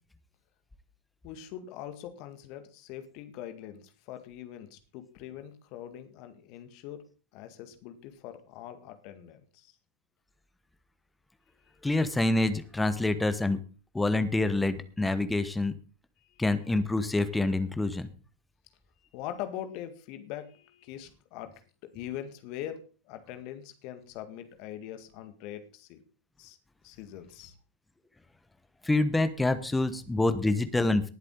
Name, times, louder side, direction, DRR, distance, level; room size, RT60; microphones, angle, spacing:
voice 1, 1.2-7.0 7.3-9.7 16.2-16.4 19.1-21.5 21.9-26.0 26.4-26.6 26.8-27.6, left 11 dB, 45° left, 8 dB, 2.0 m, -42 dB
voice 2, 11.8-13.6 13.9-15.7 16.4-18.1 28.8-31.1, left 2 dB, 5° left, 11 dB, 1.1 m, -26 dB
19.0 x 8.2 x 3.9 m, 0.37 s
figure-of-eight pair, 90°, 0 cm